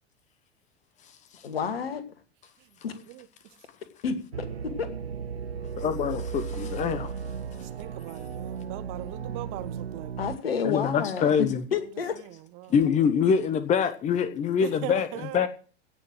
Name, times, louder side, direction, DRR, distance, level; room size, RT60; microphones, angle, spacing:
voice 1, 1.4-2.0 2.8-2.9 4.0-4.9 10.2-12.2, left 6 dB, 65° left, 2.4 m, -30 dB
sound 1, 4.3-10.4, right 6 dB, 80° right, 0.6 m, -35 dB
voice 2, 5.8-7.1 10.6-11.6 12.7-15.1 15.3-15.5, left 7 dB, 25° left, 1.1 m, -24 dB
voice 3, 7.5-10.1 12.1-12.7 14.6-15.5, right 17 dB, 40° right, 1.3 m, -40 dB
17.0 x 6.7 x 7.7 m
figure-of-eight pair, 85°, 31 cm